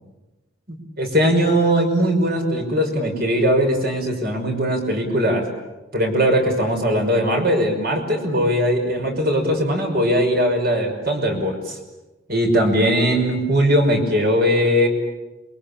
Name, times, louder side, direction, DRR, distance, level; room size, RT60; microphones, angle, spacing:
voice 1, 0.7-5.5 5.9-11.8 12.3-14.9, equal, 50° right, 3 dB, 5.9 m, -20 dB
27.5 x 23.5 x 8.6 m, 1.1 s
head